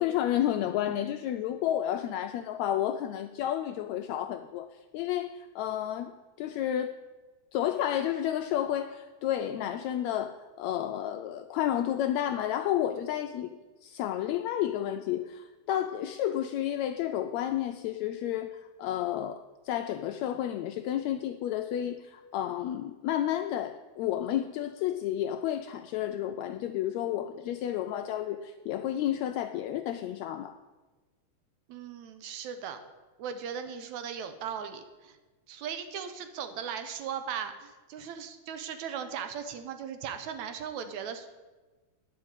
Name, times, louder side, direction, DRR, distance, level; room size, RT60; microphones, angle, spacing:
voice 1, 0.0-4.7 4.9-6.9 7.5-13.5 13.8-30.6, left 11 dB, 80° left, 7 dB, 1.6 m, -31 dB
voice 2, 31.7-32.8 33.2-35.2 35.5-41.4, right 7 dB, 75° right, 8 dB, 2.0 m, -38 dB
10.0 x 6.3 x 8.8 m, 1.2 s
omnidirectional pair, 3.6 m